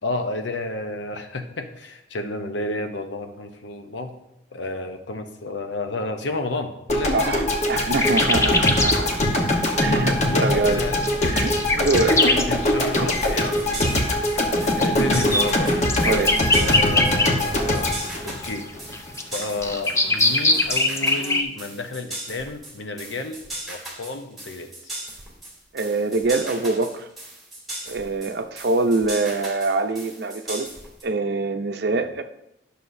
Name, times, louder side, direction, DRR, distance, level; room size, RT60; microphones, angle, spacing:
voice 1, 0.0-4.2 4.5-7.4 8.2-8.5 9.9-11.0 11.2-11.4 11.9-14.2 14.7-15.8 16.5-18.0 18.2-18.7 19.3-23.4 23.7-24.7 31.9-32.0, left 2 dB, 80° left, 6 dB, 0.8 m, -31 dB
sound 1, 6.9-19.1, left 1 dB, 40° left, 1.1 m, -22 dB
voice 2, 7.1-9.2 9.8-10.8 11.3-12.2 13.0-13.1 16.0-16.4 25.7-27.1 27.9-30.7 31.0-32.2, right 3 dB, 60° right, 8 dB, 0.6 m, -24 dB
sound 2, 8.0-9.0 9.4-9.5 10.8-12.5 13.4-13.6 14.4-17.7 18.0-21.4, left 2 dB, 15° left, 0.5 m, -22 dB
sound 3, 13.2-31.0, right 1 dB, ahead, 2.5 m, -37 dB
11.0 x 6.7 x 2.6 m, 0.86 s
head